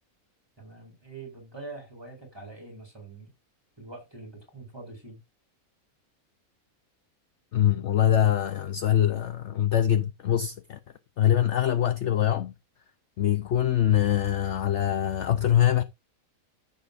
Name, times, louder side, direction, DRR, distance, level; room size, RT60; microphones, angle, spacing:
voice 1, 0.6-3.3 3.8-5.2, right 3 dB, 15° right, 4.7 m, -44 dB
voice 2, 7.5-10.8 11.2-12.5 13.2-15.8, left 11 dB, 60° left, 0.9 m, -23 dB
14.5 x 6.8 x 2.6 m
omnidirectional pair, 1.5 m